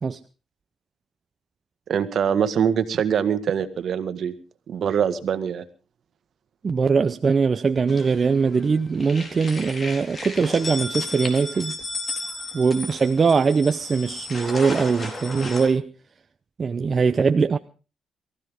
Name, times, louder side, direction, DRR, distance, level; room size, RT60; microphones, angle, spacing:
voice 1, 1.9-4.3 4.7-5.6, right 8 dB, 60° right, 1.8 m, -23 dB
voice 2, 6.6-11.8 12.5-15.9 16.6-17.6, right 5 dB, 35° right, 0.7 m, -21 dB
sound 1, 7.9-8.6 8.9-15.7, left 2 dB, 35° left, 4.1 m, -34 dB
23.0 x 15.0 x 3.7 m
cardioid pair, 90°, 0 cm